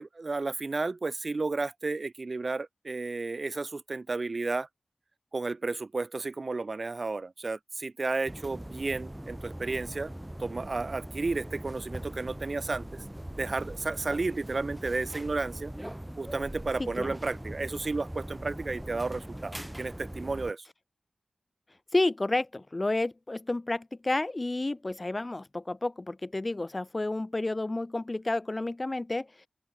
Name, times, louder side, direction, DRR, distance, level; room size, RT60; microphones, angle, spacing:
voice 1, 0.0-4.7 5.3-10.1 10.4-13.0 13.4-15.7 16.2-20.7, right 3 dB, 60° right, 0.6 m, -32 dB
sound 1, 8.3-20.5, right 1 dB, 15° right, 1.4 m, -41 dB
voice 2, 16.8-17.2 21.9-29.3, left 2 dB, 40° left, 1.2 m, -30 dB
open air
cardioid pair, 45°, 0 cm